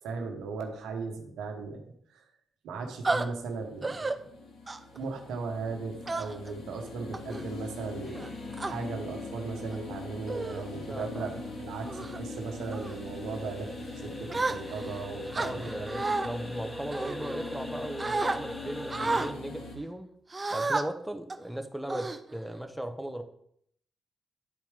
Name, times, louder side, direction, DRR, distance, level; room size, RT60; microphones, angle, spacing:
voice 1, 0.0-1.8 2.1-2.2 2.6-4.2 4.9-8.3 8.6-13.7 14.0-16.0, right 4 dB, 85° right, 4 dB, 1.1 m, -37 dB
sound 1, 2.8-19.8, left 3 dB, 80° left, 1.4 m, -43 dB
sound 2, 3.0-3.2 3.8-4.1 4.7-5.0 6.1-6.5 7.1-7.4 8.1-8.7 9.5-9.8 10.3-10.6 11.1-11.4 11.9-12.2 12.7-13.0 14.3-14.9 15.3-16.3 16.9-17.7 18.0-18.4 18.9-19.3 20.3-20.8 21.3-21.5 21.9-22.6, right 3 dB, 35° right, 0.6 m, -32 dB
sound 3, 8.1-19.3, equal, 10° left, 0.9 m, -43 dB
voice 2, 10.9-11.2 15.3-20.1 20.5-23.2, right 1 dB, 5° right, 6 dB, 1.1 m, -37 dB
11.0 x 4.5 x 3.6 m, 0.69 s
supercardioid pair, 50°, 0 cm